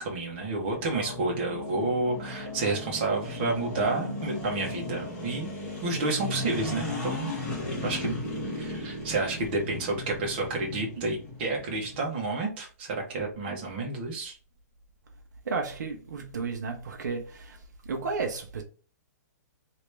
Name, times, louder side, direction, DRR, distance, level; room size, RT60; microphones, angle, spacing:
voice 1, 0.0-5.5 5.8-7.3 7.8-8.2 8.5-14.4, right 3 dB, 35° right, 1.2 m, -30 dB
sound 1, 0.7-12.0, left 2 dB, 10° left, 1.1 m, -36 dB
voice 2, 15.4-18.6, right 4 dB, 85° right, 0.9 m, -33 dB
3.0 x 2.8 x 3.3 m
hypercardioid pair, 175°, 9 cm